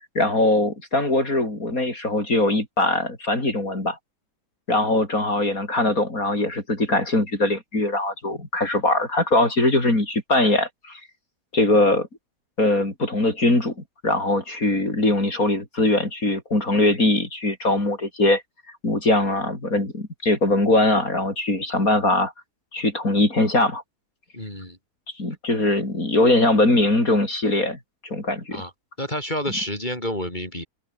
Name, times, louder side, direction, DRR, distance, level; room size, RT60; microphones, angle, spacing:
voice 1, 0.0-4.0 4.7-11.0 11.5-12.1 12.6-18.4 18.8-22.3 22.7-23.8 25.2-28.6, left 2 dB, 55° left, 6.5 m, -21 dB
voice 2, 24.3-24.8 28.5-28.7 29.0-30.7, equal, 25° left, 6.2 m, -29 dB
omnidirectional pair, 1.8 m